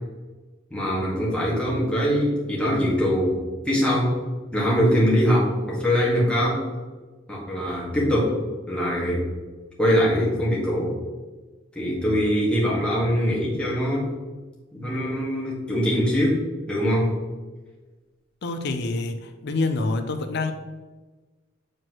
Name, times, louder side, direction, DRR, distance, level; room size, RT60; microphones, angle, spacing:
voice 1, 0.7-3.4 3.7-4.2 4.5-6.6 7.3-8.4 8.7-9.3 9.8-10.9 11.8-14.1 14.7-16.4 16.7-17.1, equal, 5° left, 1.7 m, -22 dB
voice 2, 18.4-20.5, left 3 dB, 60° left, 0.6 m, -26 dB
7.5 x 4.4 x 3.1 m
head